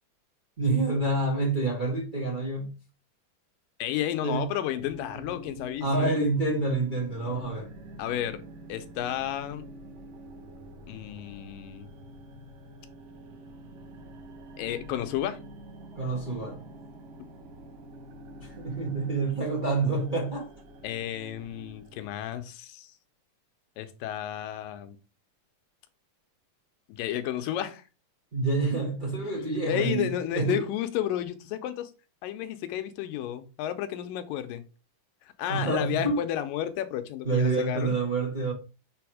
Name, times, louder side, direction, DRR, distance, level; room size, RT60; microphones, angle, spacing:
voice 1, 0.6-2.7 4.2-4.4 5.8-7.7 16.0-16.6 18.4-20.5 28.3-30.1 30.3-30.6 35.5-36.2 37.2-38.5, right 3 dB, 35° right, 0.7 m, -27 dB
voice 2, 3.8-6.2 8.0-8.4 8.7-9.6 10.9-11.9 14.6-15.4 20.8-22.9 23.8-25.0 26.9-27.8 29.2-31.9 32.2-34.6 35.2-38.0, left 11 dB, 90° left, 2.4 m, -32 dB
sound 1, 4.8-22.3, right 1 dB, 85° right, 2.9 m, -46 dB
6.9 x 3.5 x 4.7 m
omnidirectional pair, 3.8 m